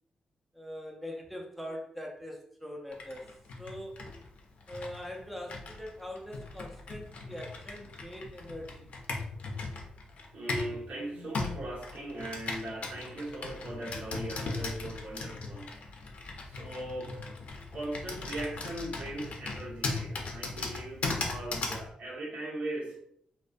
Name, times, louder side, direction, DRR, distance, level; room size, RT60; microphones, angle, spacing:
voice 1, 0.5-3.3 3.6-4.1 4.7-8.9, left 1 dB, ahead, 0 dB, 0.4 m, -42 dB
Computer keyboard, 2.9-10.8 11.3-21.9, left 3 dB, 65° left, 0.5 m, -38 dB
voice 2, 10.3-15.7 16.4-17.3 17.7-23.0, right 1 dB, 70° right, -4 dB, 0.9 m, -39 dB
2.4 x 2.1 x 2.5 m, 0.71 s
cardioid pair, 80°, 2 cm